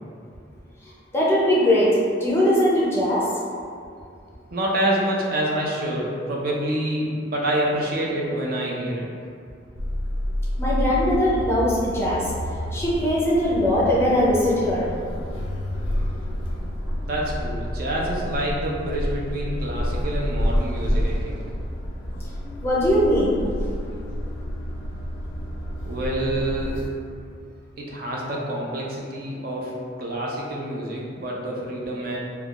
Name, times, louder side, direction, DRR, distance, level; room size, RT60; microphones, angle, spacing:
voice 1, 1.1-3.3 10.6-12.3 12.7-14.9 22.6-23.7, equal, 15° left, -7 dB, 0.5 m, -20 dB
voice 2, 4.5-9.1 17.0-21.4 25.9-26.8 27.8-32.2, right 1 dB, 50° right, -3 dB, 0.4 m, -27 dB
sound 1, 9.7-26.9, equal, 80° left, 0.4 m, -29 dB
3.4 x 2.2 x 2.3 m, 2.3 s
head